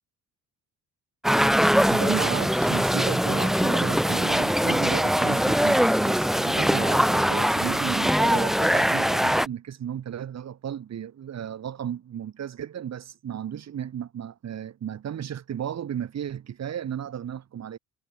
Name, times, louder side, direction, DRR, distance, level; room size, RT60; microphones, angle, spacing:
sound 1, 1.2-9.5, equal, ahead, 0.6 m, -22 dB
voice 1, 1.9-17.8, right 9 dB, 60° right, 4.4 m, -34 dB
cardioid pair, 90°, 30 cm